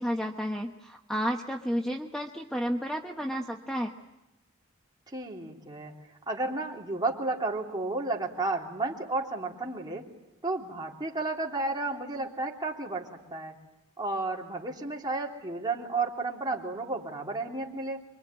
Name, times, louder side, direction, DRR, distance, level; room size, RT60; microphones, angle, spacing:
voice 1, 0.0-3.9, equal, 5° left, 3 dB, 1.1 m, -31 dB
voice 2, 5.1-5.9 6.3-10.1 10.4-13.6 14.0-18.1, right 3 dB, 20° right, -1 dB, 3.3 m, -32 dB
25.0 x 24.0 x 9.1 m, 0.94 s
head